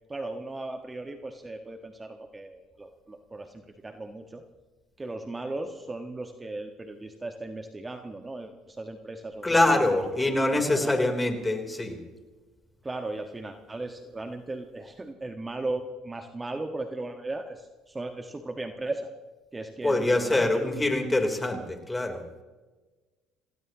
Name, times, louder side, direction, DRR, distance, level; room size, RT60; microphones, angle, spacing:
voice 1, 0.1-4.4 5.0-9.5 9.7-10.9 12.8-19.1 19.5-20.6, right 2 dB, 20° right, 5 dB, 1.5 m, -37 dB
voice 2, 9.4-12.0 19.8-22.2, left 2 dB, 15° left, 4 dB, 3.6 m, -24 dB
28.0 x 17.5 x 3.0 m, 1.3 s
hypercardioid pair, 70°, 0 cm